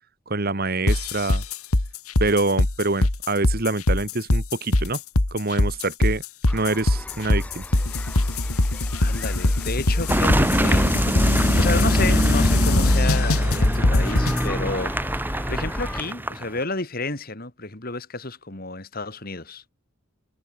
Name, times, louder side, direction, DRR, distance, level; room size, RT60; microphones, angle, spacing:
voice 1, 0.3-1.4 2.2-5.0 5.3-6.2 6.5-7.6, right 2 dB, 45° right, 1.7 m, -25 dB
sound 1, 0.9-14.4, left 1 dB, 90° left, 2.1 m, -21 dB
sound 2, 6.5-16.0, equal, 5° left, 3.5 m, -36 dB
voice 2, 9.0-11.2 11.6-19.6, left 3 dB, 45° left, 2.5 m, -31 dB
Car passing by / Engine, 10.1-16.6, right 1 dB, 10° right, 2.8 m, -24 dB
head